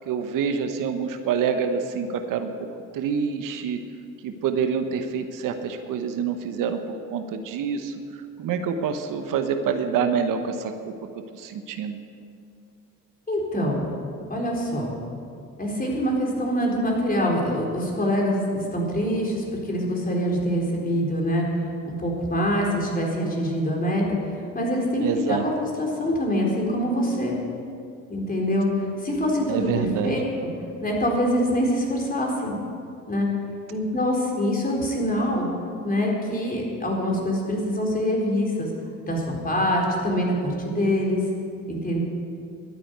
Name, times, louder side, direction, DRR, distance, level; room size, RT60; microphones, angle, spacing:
voice 1, 0.1-2.5 2.9-3.8 4.2-7.9 8.4-10.9 11.3-12.0 25.0-25.4 29.5-30.1, right 6 dB, 70° right, 8 dB, 1.0 m, -26 dB
voice 2, 13.3-13.9 14.3-15.0 15.6-21.5 21.9-25.5 25.8-27.4 28.1-28.7 29.0-30.2 30.8-32.5 33.1-33.3 33.7-35.5 35.8-38.7 39.1-41.2 41.7-42.0, equal, 25° left, -2 dB, 4.2 m, -24 dB
12.5 x 9.3 x 8.0 m, 2.4 s
supercardioid pair, 65°, 33 cm